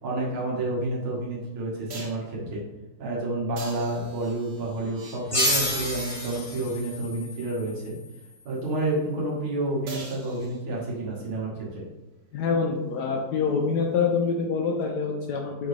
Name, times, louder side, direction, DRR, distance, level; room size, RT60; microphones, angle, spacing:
voice 1, 0.0-2.6 3.0-8.0 8.5-11.8, right 2 dB, 85° right, -4 dB, 2.1 m, -29 dB
sound 1, 0.8-0.9 1.9-2.3 3.6-5.7 9.9-11.0 14.8-14.9, right 1 dB, 60° right, 0.6 m, -42 dB
sound 2, 5.3-8.5, left 1 dB, 45° left, 0.4 m, -30 dB
voice 2, 12.3-15.7, left 5 dB, 75° left, 1 dB, 1.0 m, -26 dB
6.0 x 2.7 x 3.1 m, 1.1 s
omnidirectional pair, 2.2 m